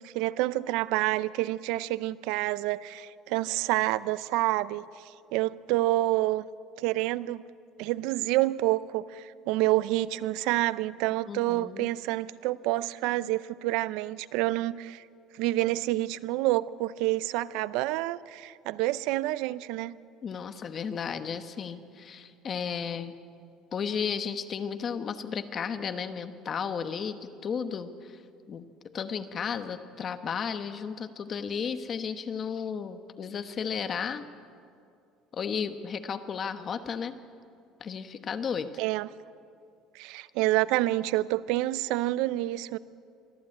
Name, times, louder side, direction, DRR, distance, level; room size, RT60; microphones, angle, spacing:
voice 1, 0.0-4.8 5.3-6.4 6.8-7.4 7.8-15.0 15.4-20.0 38.8-39.1 39.9-42.8, right 17 dB, 75° right, 0.5 m, -28 dB
voice 2, 11.3-11.9 20.2-23.1 23.7-28.2 28.5-28.6 28.9-34.2 35.3-37.2 37.8-38.7, left 6 dB, 35° left, 1.1 m, -34 dB
23.5 x 13.5 x 8.7 m
cardioid pair, 140°, 0 cm